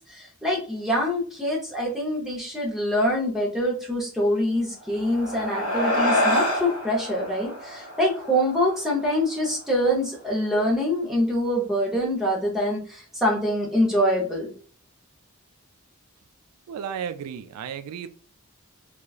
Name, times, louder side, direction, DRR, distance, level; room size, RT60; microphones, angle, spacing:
voice 1, 0.1-14.5, equal, ahead, 0.7 m, -25 dB
sound 1, 4.8-9.6, left 1 dB, 75° left, 0.9 m, -27 dB
voice 2, 16.7-18.1, right 8 dB, 90° right, 0.3 m, -33 dB
2.9 x 2.3 x 2.3 m
head